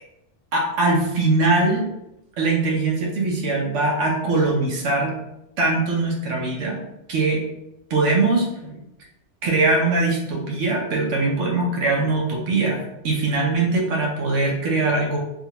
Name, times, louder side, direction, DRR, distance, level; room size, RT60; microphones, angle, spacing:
voice 1, 0.5-1.8 2.4-5.1 5.6-6.8 7.1-7.4 7.9-8.8 9.4-15.2, right 3 dB, 85° right, -1 dB, 1.0 m, -21 dB
2.5 x 2.4 x 2.8 m, 0.87 s
omnidirectional pair, 1.2 m